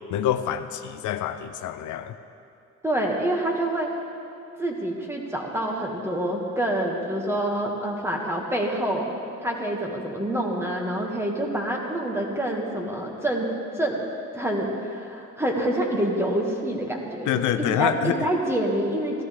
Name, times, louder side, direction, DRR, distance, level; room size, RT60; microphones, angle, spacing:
voice 1, 0.1-2.1 17.3-18.2, left 11 dB, 80° left, 9 dB, 0.6 m, -26 dB
voice 2, 2.8-3.9 4.6-9.1 9.4-13.5 13.8-14.0 14.3-19.2, right 1 dB, 10° right, 0 dB, 2.0 m, -27 dB
15.5 x 13.0 x 3.8 m, 2.7 s
cardioid pair, 90°, 30 cm